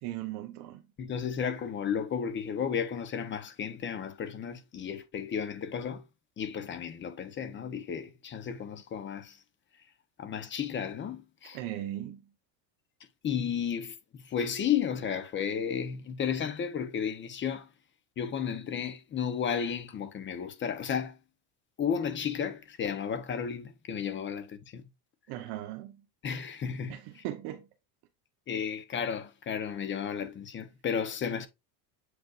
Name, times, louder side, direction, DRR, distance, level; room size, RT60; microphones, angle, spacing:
voice 1, 0.0-0.8 11.5-12.3 25.3-26.0 26.9-27.7, right 13 dB, 60° right, 1.1 m, -38 dB
voice 2, 1.0-6.0 6.4-9.4 10.2-11.6 13.2-17.7 18.2-21.2 21.8-24.9 26.2-27.2 28.5-31.5, left 7 dB, 25° left, 0.9 m, -33 dB
7.8 x 5.3 x 2.5 m
supercardioid pair, 135°, 44 cm